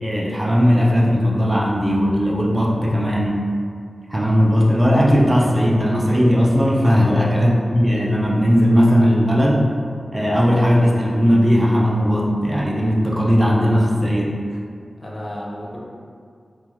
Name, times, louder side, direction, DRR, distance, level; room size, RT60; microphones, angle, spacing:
voice 1, 0.0-3.4 4.1-9.7 10.1-14.4, equal, 30° right, -4 dB, 0.4 m, -17 dB
voice 2, 7.0-7.4 15.0-15.8, equal, 35° left, -5 dB, 0.6 m, -31 dB
3.1 x 2.3 x 2.4 m, 2.2 s
wide cardioid pair, 65°, 0 cm